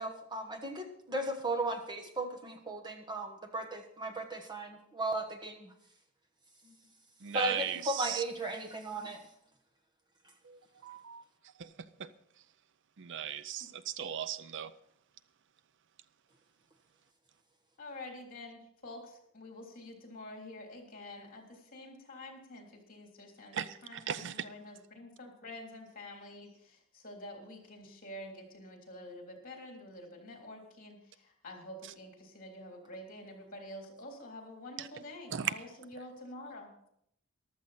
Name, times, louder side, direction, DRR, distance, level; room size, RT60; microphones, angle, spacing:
voice 1, 0.0-5.7 7.3-9.2, right 2 dB, 20° right, 4 dB, 1.2 m, -36 dB
voice 2, 7.2-8.2 10.4-11.2 11.6-11.7 12.0-12.1 13.0-14.7 23.5-24.5 34.8-34.9 35.3-35.5, right 9 dB, 55° right, 15 dB, 0.5 m, -37 dB
voice 3, 17.8-36.7, left 1 dB, 40° left, 2 dB, 3.4 m, -48 dB
14.5 x 12.5 x 4.2 m, 0.72 s
head